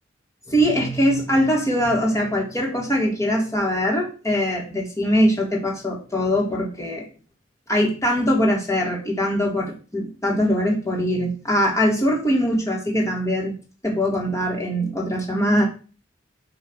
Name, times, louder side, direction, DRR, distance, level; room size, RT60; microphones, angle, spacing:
voice 1, 0.5-7.0 7.7-13.5 13.8-15.6, equal, 15° left, -2 dB, 1.9 m, -22 dB
8.7 x 3.1 x 6.2 m, 0.36 s
head